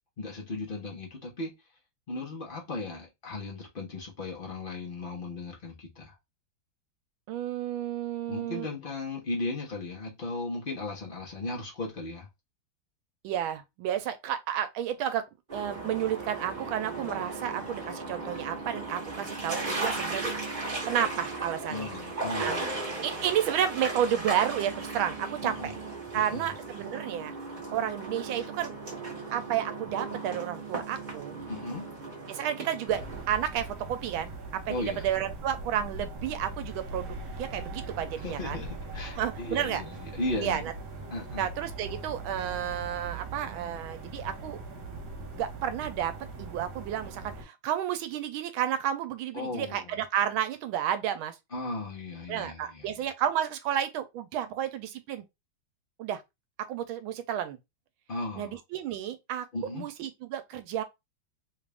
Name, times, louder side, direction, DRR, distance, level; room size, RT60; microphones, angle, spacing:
voice 1, 0.2-1.5 2.1-6.1 8.3-12.3 17.4-17.5 21.7-22.7 25.4-25.7 26.1-26.5 31.5-31.9 34.7-35.0 38.2-40.6 41.1-41.4 49.3-50.0 51.5-53.0 58.1-58.6 59.5-59.9, left 2 dB, 40° left, 0.7 m, -36 dB
voice 2, 7.3-8.7 13.2-15.2 15.5-20.2 20.8-21.9 22.4-22.5 23.0-25.7 26.1-27.3 27.7-28.7 29.3-31.4 32.3-33.0 33.3-38.6 39.2-39.8 40.4-40.7 41.4-44.6 45.3-46.1 46.4-51.3 52.3-55.2 56.0-56.2 56.7-57.6 58.3-59.5 59.7-60.8, right 10 dB, 85° right, 1.4 m, -31 dB
sound 1, 15.5-33.2, right 3 dB, 30° right, 1.1 m, -36 dB
sound 2, 32.9-47.4, right 2 dB, 60° right, 1.5 m, -41 dB
3.5 x 2.5 x 3.3 m
omnidirectional pair, 2.2 m